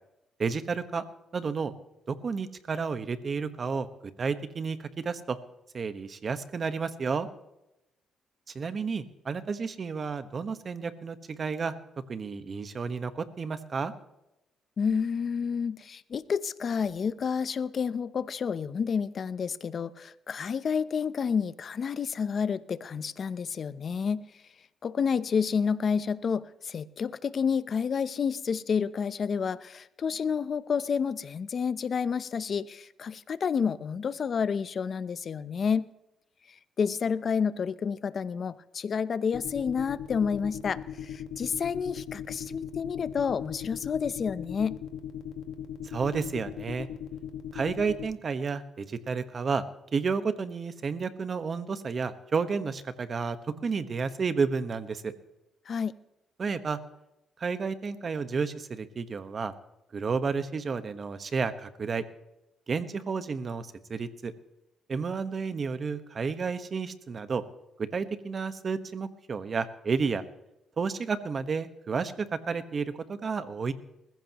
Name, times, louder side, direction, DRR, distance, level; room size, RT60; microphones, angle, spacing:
voice 1, 0.4-1.0 1.3-1.7 2.1-5.4 5.7-7.3 8.5-11.8 12.1-13.9 45.8-46.9 47.5-49.6 49.9-53.4 53.6-55.1 56.4-56.8 57.4-59.5 59.9-62.0 62.7-64.3 64.9-67.4 67.8-70.2 70.8-73.7, right 5 dB, 40° right, 11 dB, 1.3 m, -31 dB
voice 2, 14.8-24.2 24.8-35.9 36.5-44.8 55.7-55.9, left 6 dB, 50° left, 16 dB, 0.7 m, -30 dB
sound 1, 39.3-48.1, left 9 dB, 85° left, 1.7 m, -38 dB
20.5 x 15.0 x 3.0 m, 0.89 s
cardioid pair, 90°, 0 cm